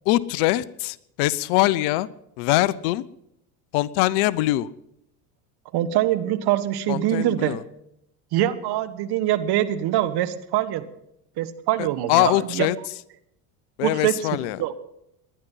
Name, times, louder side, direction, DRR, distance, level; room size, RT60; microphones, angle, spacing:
voice 1, 0.1-2.1 2.4-3.0 3.7-4.7 6.9-7.6 11.8-12.8 13.8-14.6, left 17 dB, 60° left, 21 dB, 0.8 m, -23 dB
voice 2, 5.7-7.6 8.3-10.8 11.4-12.7 13.8-14.2 14.6-14.7, right 13 dB, 55° right, 12 dB, 1.5 m, -23 dB
19.5 x 11.5 x 5.7 m, 0.79 s
hypercardioid pair, 85°, 47 cm